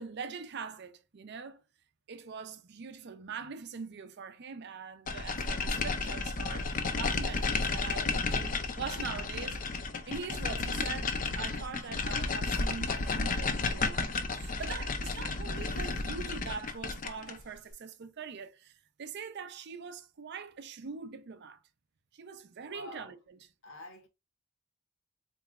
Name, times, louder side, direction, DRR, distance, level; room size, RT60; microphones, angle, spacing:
voice 1, 0.0-1.6 2.1-6.7 7.0-9.6 10.1-21.6 22.1-23.4, right 5 dB, 50° right, 0.4 m, -43 dB
sound 1, 5.1-17.4, left 3 dB, 35° left, 0.4 m, -32 dB
voice 2, 22.6-23.1 23.6-24.1, left 1 dB, 60° left, 0.9 m, -47 dB
4.0 x 3.0 x 2.3 m
head